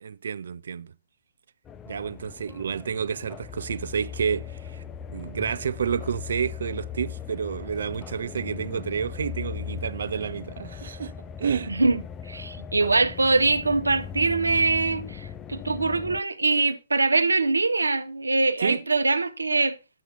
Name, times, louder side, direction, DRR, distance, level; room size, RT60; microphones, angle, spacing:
voice 1, 0.0-0.9 1.9-4.8 5.1-11.1 11.4-11.7 18.6-18.8, right 7 dB, 60° right, 0.6 m, -30 dB
sound 1, 1.6-16.2, left 8 dB, 15° left, 0.5 m, -39 dB
voice 2, 11.7-12.0 12.3-19.8, right 3 dB, 80° right, 1.0 m, -23 dB
11.0 x 7.9 x 4.2 m
figure-of-eight pair, 125°, 0 cm